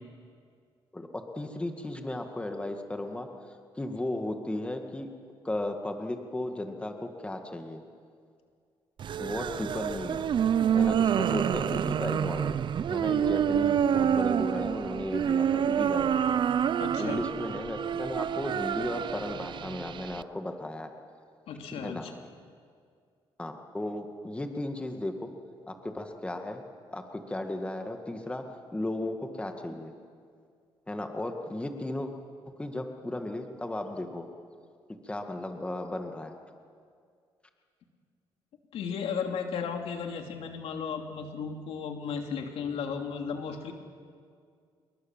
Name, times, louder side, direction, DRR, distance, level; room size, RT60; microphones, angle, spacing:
voice 1, 0.9-3.3 3.8-5.1 5.4-7.8 9.2-10.2 10.7-12.6 12.9-16.4 17.0-20.9 21.8-22.1 23.4-25.3 25.7-26.6 26.9-28.4 28.7-29.9 30.9-32.1 32.5-34.3 35.0-36.3, left 1 dB, 10° left, 4 dB, 2.0 m, -35 dB
sound 1, 9.0-20.2, right 8 dB, 55° right, 0.6 m, -27 dB
voice 2, 16.8-17.2 21.5-22.1 38.7-43.7, left 6 dB, 80° left, 3 dB, 3.0 m, -35 dB
28.0 x 22.5 x 7.4 m, 2.2 s
cardioid pair, 120°, 10 cm